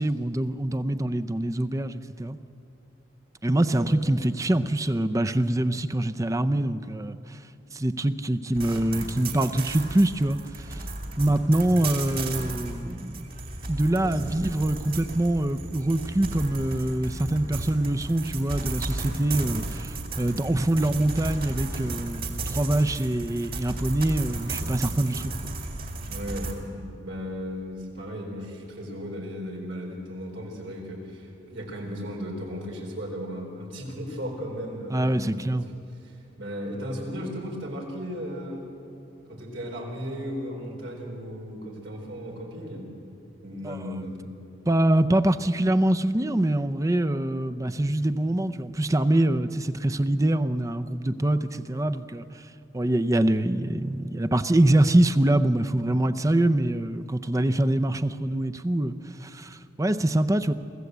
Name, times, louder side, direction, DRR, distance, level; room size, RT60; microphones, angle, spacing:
voice 1, 0.0-2.4 3.4-7.4 7.7-10.9 11.2-13.3 13.7-25.3 34.9-35.7 43.6-43.8 44.7-52.2 52.7-59.0 59.2-60.5, right 1 dB, 15° right, 11 dB, 0.6 m, -24 dB
sound 1, 8.5-26.5, right 2 dB, 50° right, 2.3 m, -34 dB
voice 2, 14.0-14.3 26.1-35.6 36.0-38.6 39.3-42.9 43.4-44.1, equal, 90° right, -1 dB, 4.2 m, -36 dB
23.5 x 15.5 x 8.1 m, 2.7 s
head